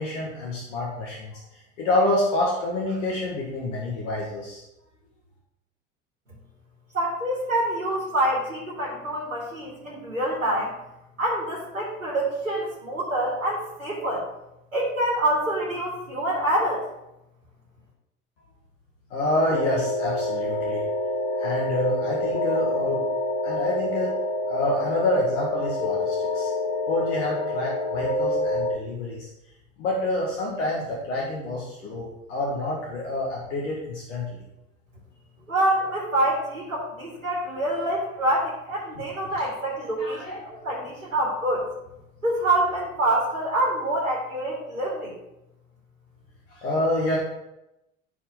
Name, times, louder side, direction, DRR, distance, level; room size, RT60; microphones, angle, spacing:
voice 1, 0.0-1.3 1.8-4.6 19.1-20.8 21.4-23.0 23.4-24.1 24.5-26.5 26.9-29.3 29.8-34.4 40.0-40.4 46.6-47.2, left 1 dB, 65° left, -3 dB, 2.2 m, -27 dB
voice 2, 6.9-10.7 11.2-14.2 14.7-16.8 35.5-41.6 42.2-45.2, right 1 dB, 85° right, -5 dB, 3.0 m, -26 dB
sound 1, 19.5-28.8, left 1 dB, 25° left, 1.0 m, -27 dB
13.5 x 4.7 x 3.9 m, 0.88 s
figure-of-eight pair, 70°, 39 cm